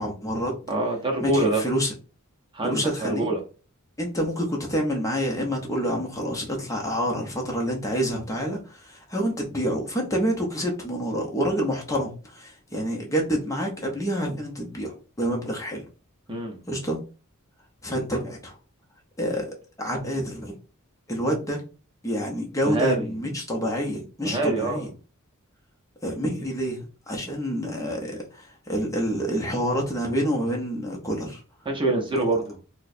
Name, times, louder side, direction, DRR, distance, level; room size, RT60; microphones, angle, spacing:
voice 1, 0.0-0.5 1.2-1.9 2.6-3.3 4.0-15.8 16.7-17.0 17.8-18.5 19.2-19.5 19.8-20.6 21.1-21.6 22.0-24.9 26.0-31.4, equal, 15° left, 0 dB, 0.7 m, -28 dB
voice 2, 0.7-1.6 2.5-3.4 16.3-16.6 22.6-23.1 24.2-24.8 31.6-32.6, right 2 dB, 20° right, 1 dB, 0.6 m, -25 dB
4.4 x 2.1 x 2.5 m, 0.35 s
head